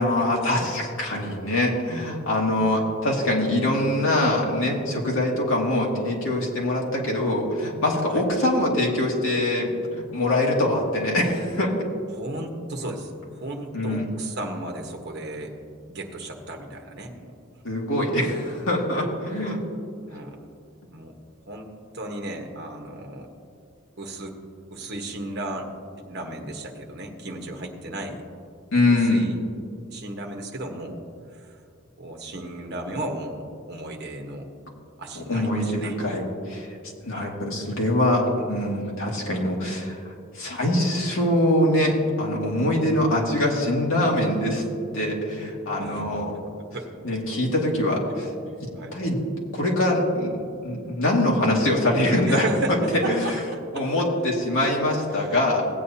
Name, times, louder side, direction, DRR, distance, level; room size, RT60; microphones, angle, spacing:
voice 1, 0.0-11.7 13.7-14.1 17.6-19.6 28.7-29.3 35.3-36.7 37.0-40.0 40.3-44.6 44.9-46.3 47.0-48.3 48.9-49.2 49.5-52.5 53.1-53.3 53.7-55.6, left 1 dB, 70° left, -2 dB, 2.0 m, -23 dB
voice 2, 12.1-15.5 15.9-17.3 20.1-20.4 20.9-21.1 21.5-23.3 24.0-24.4 24.7-25.7 26.1-28.2 28.9-29.4 29.9-31.0 31.3-31.6 32.0-33.4 33.7-34.5 35.0-36.0 37.1-37.3 45.8-46.1 46.7-46.9 48.7-48.9 52.2-52.7 53.0-53.8, right 1 dB, 50° right, 2 dB, 1.2 m, -34 dB
17.0 x 8.6 x 2.8 m, 2.3 s
head